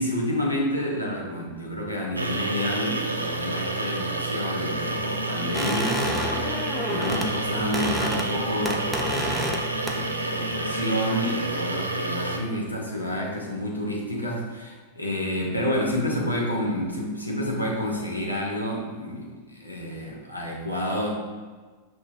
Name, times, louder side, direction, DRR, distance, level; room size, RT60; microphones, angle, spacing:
voice 1, 0.0-9.6 9.9-21.1, equal, 85° left, -2 dB, 0.8 m, -29 dB
sound 1, 2.2-12.4, right 2 dB, 80° right, 0.4 m, -29 dB
sound 2, 4.6-11.1, left 3 dB, 60° left, 0.4 m, -40 dB
sound 3, 5.5-7.3 7.6-8.3 8.7-9.6 9.9-10.2, equal, ahead, 0.5 m, -29 dB
5.7 x 3.0 x 2.7 m, 1.4 s
figure-of-eight pair, 90°, 0 cm